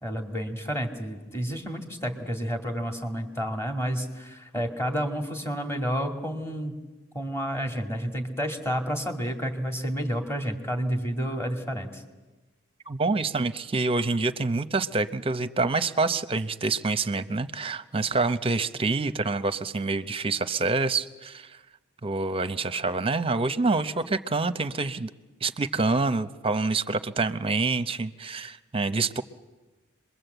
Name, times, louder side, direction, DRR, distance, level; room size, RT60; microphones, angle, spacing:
voice 1, 0.0-6.8 7.1-12.0, equal, 10° left, 4 dB, 2.3 m, -30 dB
voice 2, 12.9-21.5 22.0-25.1 25.4-29.2, right 3 dB, 25° right, 11 dB, 0.7 m, -27 dB
27.0 x 22.0 x 8.0 m, 1.2 s
head